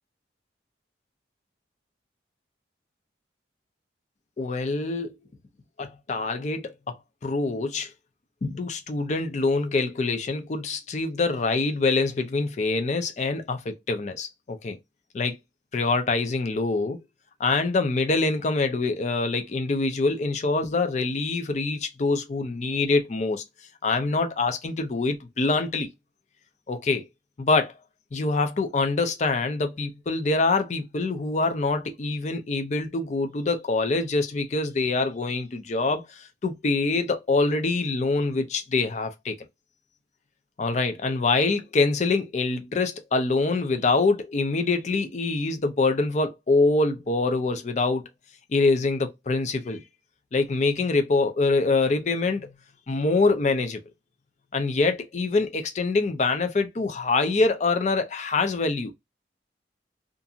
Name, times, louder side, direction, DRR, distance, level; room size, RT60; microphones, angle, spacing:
voice 1, 4.4-5.1 5.8-7.0 7.2-7.9 8.4-14.8 15.1-15.4 15.7-17.0 17.4-23.4 23.8-25.9 26.7-27.1 27.4-27.7 28.1-39.3 40.6-48.0 48.5-49.8 50.3-52.5 52.9-53.8 54.5-58.9, left 3 dB, 40° left, 0.4 m, -25 dB
2.5 x 2.4 x 2.7 m
head